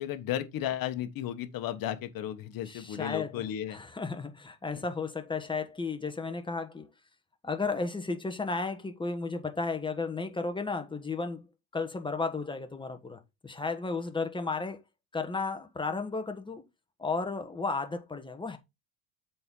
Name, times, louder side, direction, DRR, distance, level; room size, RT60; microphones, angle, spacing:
voice 1, 0.0-3.8 4.7-4.8, left 11 dB, 45° left, 1.2 m, -34 dB
voice 2, 2.7-6.9 7.4-11.5 11.7-14.8 15.1-16.6 17.0-18.6, left 4 dB, 10° left, 1.2 m, -34 dB
7.7 x 4.3 x 3.7 m
supercardioid pair, 120°, 46 cm